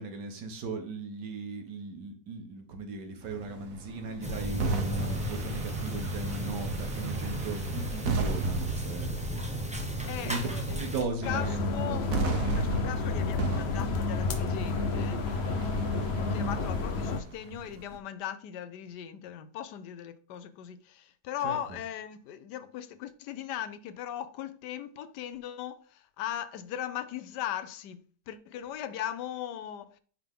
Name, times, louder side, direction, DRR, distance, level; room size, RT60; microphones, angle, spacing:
voice 1, 0.0-9.6 10.2-12.1 15.6-15.9 21.4-21.6, right 3 dB, 75° right, 1.9 m, -38 dB
sound 1, 3.2-18.0, right 3 dB, 55° right, 1.3 m, -36 dB
sound 2, 4.2-11.0, equal, 5° right, 0.6 m, -34 dB
voice 2, 10.1-10.9 11.2-15.2 16.2-28.0 28.3-30.0, left 10 dB, 75° left, 1.3 m, -38 dB
sound 3, 11.2-17.2, left 3 dB, 55° left, 0.8 m, -30 dB
9.3 x 3.7 x 3.6 m
omnidirectional pair, 1.9 m